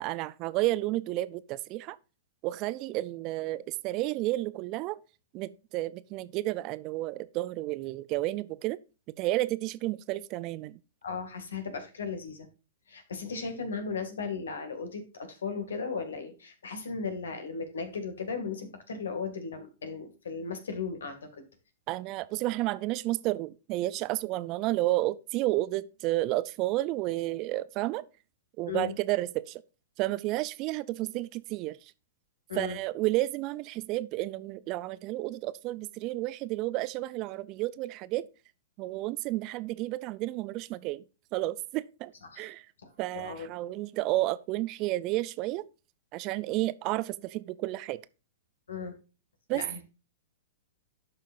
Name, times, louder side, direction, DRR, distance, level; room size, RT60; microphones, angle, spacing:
voice 1, 0.0-2.0 2.4-5.0 5.3-8.8 9.2-10.8 21.9-28.0 28.6-29.6 30.0-31.8 32.5-38.3 38.8-41.0 41.3-42.6 43.0-45.6 46.1-48.0 49.5-49.6, right 17 dB, 40° right, 0.5 m, -31 dB
voice 2, 11.0-12.5 12.9-21.4 28.7-29.0 32.5-32.8 42.2-42.5 42.8-43.5 48.7-49.0 49.5-49.8, left 5 dB, 75° left, 2.3 m, -36 dB
12.0 x 5.7 x 2.6 m
hypercardioid pair, 110°, 0 cm